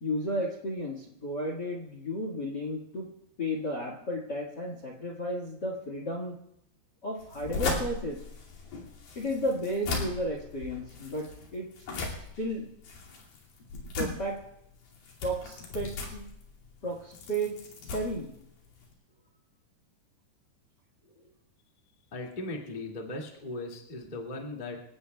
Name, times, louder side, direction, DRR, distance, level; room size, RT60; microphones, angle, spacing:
voice 1, 0.0-3.1 3.4-6.3 7.0-8.2 9.1-11.7 12.4-12.6 14.0-14.4 15.2-16.3 16.8-17.5 17.9-18.3, equal, 45° left, -1 dB, 1.4 m, -33 dB
sound 1, 7.2-18.9, left 3 dB, 60° left, 4.1 m, -38 dB
voice 2, 22.1-24.8, left 2 dB, 25° left, -1 dB, 1.1 m, -38 dB
27.0 x 17.5 x 2.3 m, 0.80 s
omnidirectional pair, 4.8 m